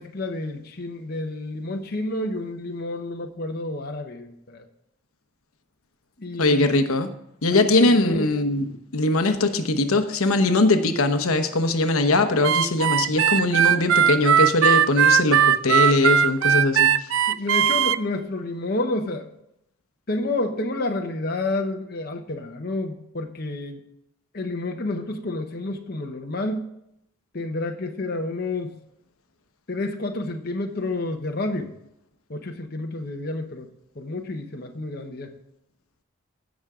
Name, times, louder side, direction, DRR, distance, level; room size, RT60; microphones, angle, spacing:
voice 1, 0.0-4.7 6.2-6.7 7.5-8.3 12.9-13.1 17.3-19.3 20.1-23.8 24.3-26.7 27.3-28.7 29.7-31.7 32.3-33.7 34.0-35.3, left 2 dB, 45° left, 3 dB, 0.9 m, -29 dB
voice 2, 6.4-7.1 7.4-8.7 8.9-16.9, left 2 dB, 80° left, 8 dB, 1.0 m, -21 dB
Harmonica, 12.4-18.0, right 8 dB, 65° right, 0.4 m, -19 dB
16.0 x 6.2 x 3.7 m, 0.79 s
head